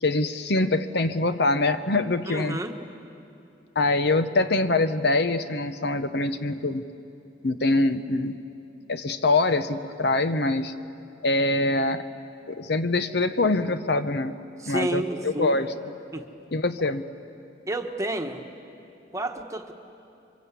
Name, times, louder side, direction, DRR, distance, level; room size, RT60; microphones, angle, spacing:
voice 1, 0.0-2.6 3.8-6.8 7.4-8.4 8.9-10.7 11.2-12.0 12.5-14.3 14.7-15.7 16.5-17.0, left 2 dB, 60° left, 10 dB, 0.9 m, -24 dB
voice 2, 2.3-2.7 14.6-15.6 16.1-16.2 17.7-18.4 19.1-19.7, right 2 dB, 15° right, 5 dB, 1.3 m, -30 dB
28.0 x 24.5 x 8.3 m, 2.7 s
head